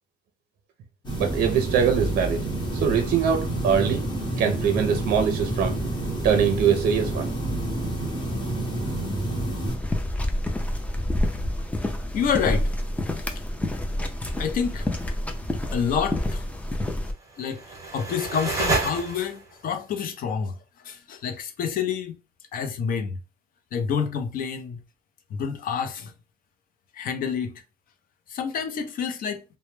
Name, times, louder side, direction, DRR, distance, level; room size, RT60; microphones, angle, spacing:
sound 1, 1.0-9.8, right 1 dB, 25° left, 0.9 m, -28 dB
voice 1, 1.2-2.5 2.7-4.1 4.4-5.8 6.2-7.3, right 7 dB, 65° right, 0.5 m, -22 dB
sound 2, 9.7-17.1, left 1 dB, 10° left, 0.4 m, -28 dB
voice 2, 12.1-12.8 13.3-13.4 14.4-14.9 15.7-16.4 17.4-20.6 20.8-22.2 22.5-23.2 23.7-24.8 25.3-26.1 26.9-27.5 28.3-29.4, left 7 dB, 55° left, 0.6 m, -28 dB
sound 3, 17.2-19.6, right 3 dB, 20° right, 0.9 m, -29 dB
2.1 x 2.0 x 3.1 m
cardioid pair, 110°, 17 cm